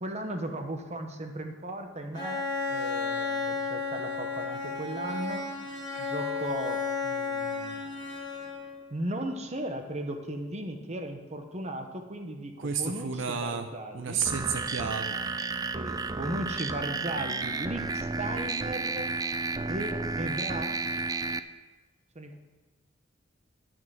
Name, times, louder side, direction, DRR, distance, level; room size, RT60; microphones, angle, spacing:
voice 1, 0.0-2.4 2.7-5.4 6.0-7.9 8.9-14.3 15.7-19.1 19.7-20.8 22.1-22.4, right 1 dB, 35° right, 5 dB, 1.1 m, -36 dB
Bowed string instrument, 2.1-8.8, left 4 dB, 25° left, 2.1 m, -33 dB
voice 2, 12.6-13.7 13.9-15.2, right 6 dB, 75° right, 7 dB, 0.6 m, -31 dB
sound 1, 14.3-21.4, right 3 dB, 20° right, 0.4 m, -32 dB
11.0 x 5.9 x 7.3 m, 1.3 s
head